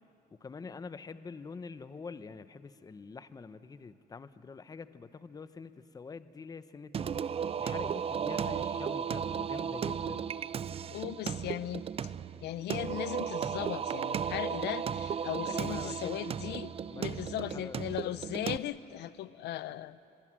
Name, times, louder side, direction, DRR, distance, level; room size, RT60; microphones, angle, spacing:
voice 1, 0.4-7.2 7.6-10.3 15.4-16.4 16.9-17.8, left 4 dB, 20° left, 13 dB, 0.7 m, -45 dB
Singing, 6.9-18.6, right 7 dB, 35° right, 0.5 m, -35 dB
voice 2, 10.9-12.1 12.4-20.0, left 13 dB, 75° left, 16 dB, 0.6 m, -38 dB
23.5 x 22.5 x 7.5 m, 2.7 s
cardioid pair, 125°, 17 cm